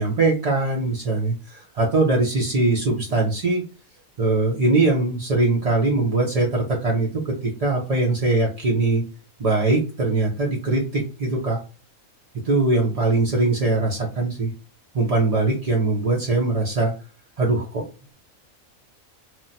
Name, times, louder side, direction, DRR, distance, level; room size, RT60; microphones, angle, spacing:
voice 1, 0.0-3.6 4.2-9.0 9.4-11.6 12.4-14.5 14.9-16.9 17.4-17.9, right 2 dB, 50° right, -2 dB, 0.4 m, -21 dB
2.9 x 2.1 x 2.6 m, 0.33 s
omnidirectional pair, 1.5 m